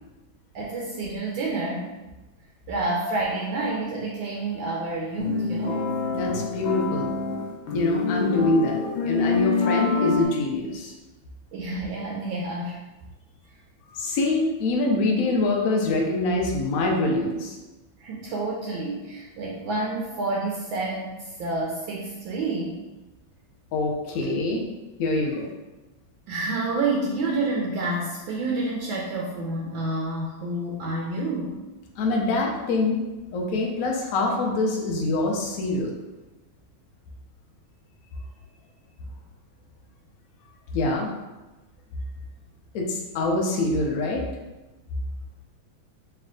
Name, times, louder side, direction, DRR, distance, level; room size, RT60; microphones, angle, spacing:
voice 1, 0.5-2.0 2.7-5.8 11.5-12.8 18.0-22.8 26.3-31.5, right 2 dB, 75° right, -2 dB, 1.3 m, -29 dB
sound 1, 5.2-10.3, left 4 dB, 70° left, 1.4 m, -26 dB
voice 2, 6.1-7.1 7.7-10.9 13.9-17.6 23.7-24.6 25.0-25.5 32.0-33.0 33.3-35.9 40.7-41.1 42.7-44.3, left 2 dB, 85° left, 0 dB, 0.7 m, -25 dB
3.4 x 3.1 x 3.6 m, 1.1 s
omnidirectional pair, 2.3 m